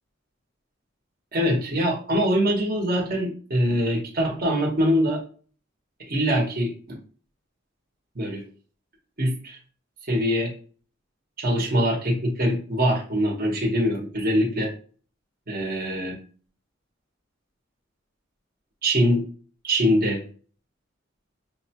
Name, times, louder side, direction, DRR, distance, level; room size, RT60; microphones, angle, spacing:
voice 1, 1.3-5.2 6.1-7.0 8.1-8.4 9.2-9.6 10.1-10.5 11.4-14.7 15.5-16.1 18.8-19.3 19.6-20.2, equal, 50° right, -1 dB, 1.1 m, -23 dB
6.1 x 2.2 x 2.9 m, 0.41 s
head